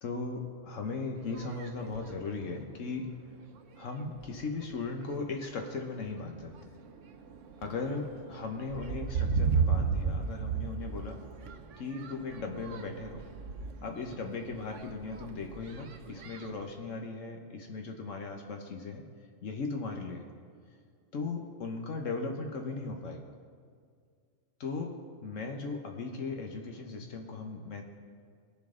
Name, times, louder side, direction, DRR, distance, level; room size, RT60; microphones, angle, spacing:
voice 1, 0.0-3.1 3.8-6.5 7.6-11.2 11.8-13.2 13.8-19.0 19.4-20.3 21.1-23.2 24.6-24.9 25.2-27.8, left 3 dB, 80° left, 3 dB, 1.4 m, -37 dB
sound 1, 1.2-2.2 3.0-3.1 3.6-3.8 4.1-4.7 5.4-5.6 6.1-16.7, right 5 dB, 75° right, 1.1 m, -35 dB
20.5 x 7.0 x 3.8 m, 2.1 s
omnidirectional pair, 1.3 m